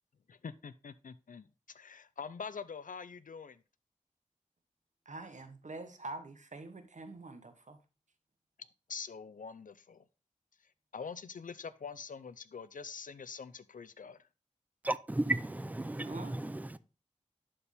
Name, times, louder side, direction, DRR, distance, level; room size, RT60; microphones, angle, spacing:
voice 1, 0.3-3.6 8.9-10.1 10.9-14.3, left 6 dB, 80° left, 0.5 m, -45 dB
voice 2, 5.0-7.8 16.0-16.4, right 2 dB, 65° right, 1.1 m, -45 dB
voice 3, 14.8-16.8, right 2 dB, 10° right, 0.5 m, -34 dB
11.0 x 4.4 x 3.4 m
wide cardioid pair, 60°, 14 cm